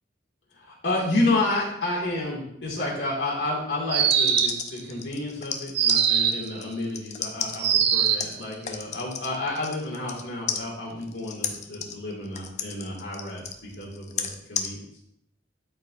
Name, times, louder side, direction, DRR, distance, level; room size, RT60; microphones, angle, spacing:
voice 1, 0.5-13.4 13.8-14.8, left 2 dB, 75° left, -4 dB, 2.4 m, -30 dB
sound 1, 3.9-10.2 10.5-14.7, left 7 dB, 40° left, 0.6 m, -33 dB
sound 2, 3.9-4.7 5.8-6.5 7.6-8.3, right 8 dB, 60° right, 0.6 m, -22 dB
12.5 x 4.8 x 2.7 m, 0.74 s
head